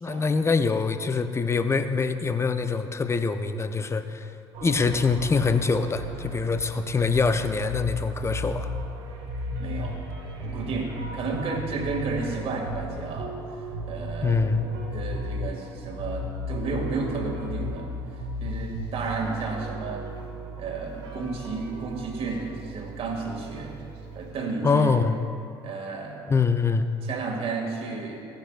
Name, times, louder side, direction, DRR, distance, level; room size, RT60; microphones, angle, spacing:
voice 1, 0.0-4.3 4.6-8.7 14.2-14.6 24.6-25.2 26.3-26.9, left 4 dB, 20° left, 9 dB, 0.7 m, -24 dB
sound 1, 4.5-24.3, equal, 70° right, 1.8 m, -35 dB
voice 2, 9.6-10.0 10.4-17.9 18.4-20.1 20.6-23.8 24.2-25.0 25.6-26.2 27.0-28.2, right 4 dB, 45° right, 0 dB, 2.2 m, -32 dB
17.0 x 10.5 x 2.5 m, 2.5 s
figure-of-eight pair, 60°, 13 cm